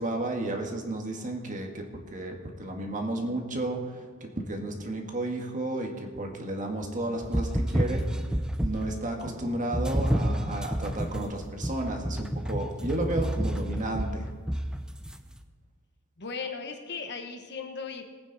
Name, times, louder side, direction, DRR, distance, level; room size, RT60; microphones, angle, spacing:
voice 1, 0.0-1.8 2.1-8.0 8.6-14.3, right 2 dB, 35° right, 2 dB, 1.8 m, -32 dB
sound 1, 7.2-9.0 9.7-15.2, equal, 5° right, 0.6 m, -29 dB
voice 2, 7.8-8.3 16.2-18.0, left 5 dB, 50° left, 5 dB, 1.2 m, -37 dB
20.5 x 9.0 x 4.2 m, 1.5 s
head